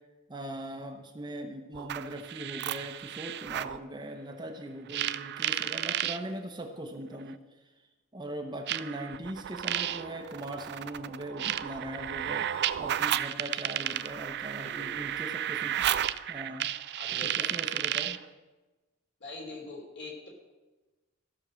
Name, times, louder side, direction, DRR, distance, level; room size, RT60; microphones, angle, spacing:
voice 1, 0.3-7.4 8.1-15.9 16.3-16.7 17.2-18.2, right 1 dB, 20° right, 4 dB, 0.8 m, -40 dB
sound 1, 1.7-3.8 4.9-6.2 7.3-7.4 8.7-18.3, right 11 dB, 50° right, 0.4 m, -33 dB
voice 2, 14.6-15.3 16.9-17.5 19.2-20.3, left 2 dB, 55° left, 0 dB, 3.1 m, -43 dB
15.0 x 6.2 x 6.2 m, 1.2 s
head